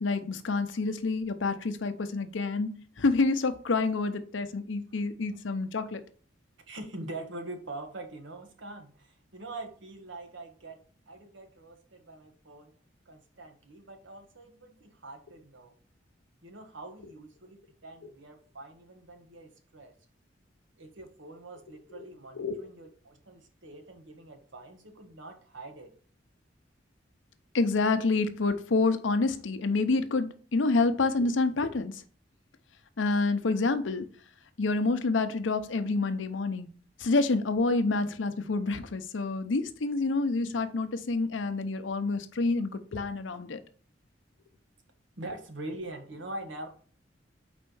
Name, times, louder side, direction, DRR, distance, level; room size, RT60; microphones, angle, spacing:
voice 1, 0.0-2.7 3.0-6.0 21.9-22.0 22.3-22.6 27.5-31.9 33.0-34.0 34.6-36.7 37.0-43.6, left 3 dB, 80° left, 0.6 m, -28 dB
voice 2, 6.7-10.8 11.1-12.7 13.0-15.7 16.4-19.9 20.8-25.9 45.2-46.7, right 2 dB, 80° right, 1.2 m, -44 dB
4.4 x 4.2 x 5.4 m
head